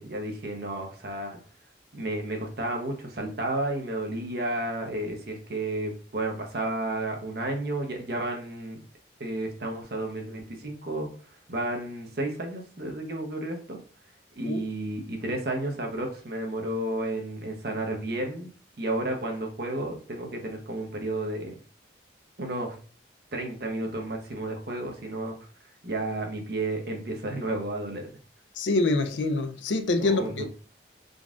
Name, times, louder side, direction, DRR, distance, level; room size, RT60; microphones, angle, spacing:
voice 1, 0.0-1.4 1.9-8.8 9.2-11.1 11.5-13.8 14.3-18.5 18.8-21.6 22.4-22.8 23.3-25.3 25.8-28.0 30.0-30.5, right 1 dB, 55° right, 0.8 m, -32 dB
voice 2, 28.6-30.5, left 2 dB, 75° left, 0.5 m, -25 dB
3.9 x 2.4 x 3.5 m
head